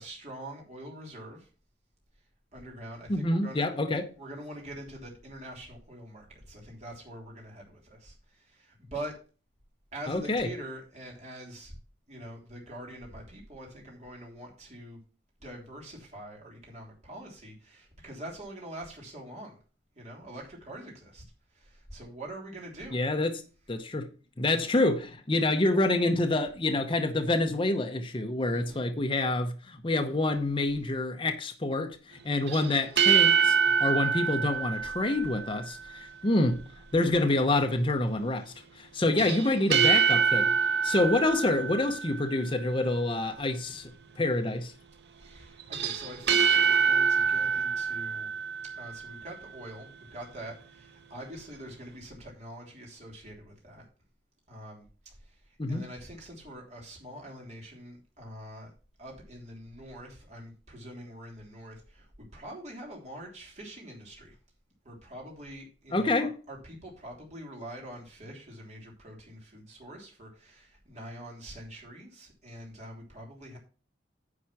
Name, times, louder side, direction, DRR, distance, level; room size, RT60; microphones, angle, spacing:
voice 1, 0.0-1.5 2.5-3.8 4.2-9.2 9.9-11.7 12.1-15.0 15.4-19.6 19.9-21.2 21.5-23.0 28.5-28.9 36.1-36.2 39.1-39.3 40.8-40.9 45.1-48.3 48.7-53.8 54.5-58.7 59.0-64.4 64.8-73.6, right 1 dB, 40° right, 3.3 m, -44 dB
voice 2, 3.1-4.1 10.1-10.5 22.9-23.3 23.7-24.1 24.4-36.6 36.9-40.5 40.8-43.9 44.2-44.7 55.6-55.8 65.9-66.3, left 2 dB, 30° left, 0.8 m, -27 dB
sound 1, 32.5-35.8 39.2-42.5 45.6-49.2, right 6 dB, 65° right, 0.8 m, -26 dB
9.8 x 4.5 x 5.9 m
head